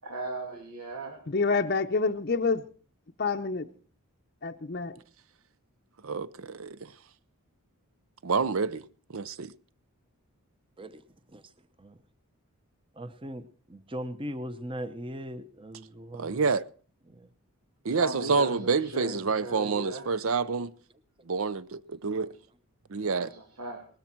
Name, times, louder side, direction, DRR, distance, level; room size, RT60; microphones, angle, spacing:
voice 1, 0.0-1.2 17.9-20.0 23.2-23.9, right 2 dB, 85° right, 2.6 m, -38 dB
voice 2, 1.3-2.6 3.2-3.7 4.4-4.9, left 4 dB, 45° left, 0.6 m, -27 dB
voice 3, 6.0-6.9 8.2-8.8 9.1-9.5 16.2-16.7 17.8-20.7 21.3-22.3 22.9-23.3, right 4 dB, 70° right, 0.6 m, -28 dB
voice 4, 13.0-13.4 13.7-16.5 17.1-17.3 18.2-18.3, equal, 25° right, 0.8 m, -39 dB
19.0 x 13.5 x 4.5 m
head